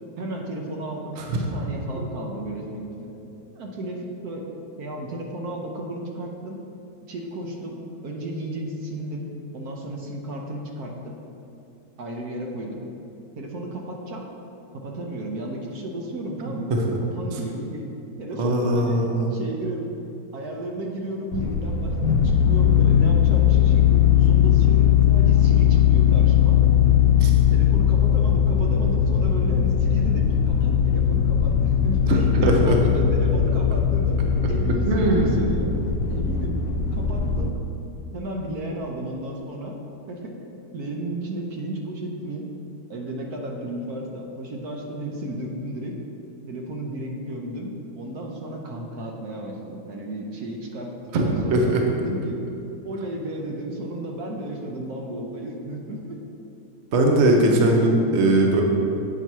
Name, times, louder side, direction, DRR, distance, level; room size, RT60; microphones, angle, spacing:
voice 1, 0.2-3.1 3.5-4.5 4.8-6.6 7.1-9.3 9.5-11.1 12.0-12.8 13.4-14.3 14.7-16.7 17.1-17.9 18.2-19.9 20.3-26.6 27.5-34.2 34.5-35.7 36.1-36.6 36.9-37.6 38.1-39.8 40.1-40.3 40.7-42.5 42.9-45.9 46.5-50.9 51.2-52.4 52.8-56.2, right 1 dB, 65° right, 0 dB, 1.3 m, -33 dB
voice 2, 18.4-19.3 27.2-27.3 32.1-32.8 34.9-35.4 51.1-51.9 56.9-58.6, right 1 dB, 50° right, 1 dB, 0.9 m, -20 dB
sound 1, 21.3-37.5, left 9 dB, 70° left, 0.9 m, -19 dB
8.3 x 4.6 x 5.5 m, 2.8 s
omnidirectional pair, 1.8 m